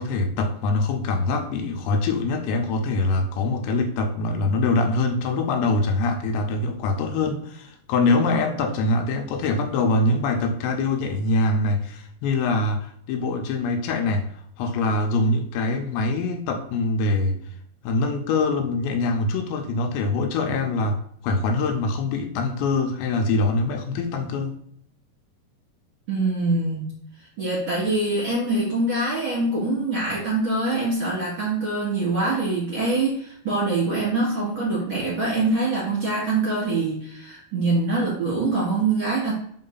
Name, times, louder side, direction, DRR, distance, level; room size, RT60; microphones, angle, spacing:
voice 1, 0.0-14.3 14.6-17.4 17.8-21.0 21.2-24.6, left 3 dB, 85° left, 2.9 m, -24 dB
voice 2, 26.1-26.9 27.4-39.3, right 2 dB, 35° right, 2.3 m, -24 dB
5.5 x 4.6 x 3.9 m
omnidirectional pair, 5.1 m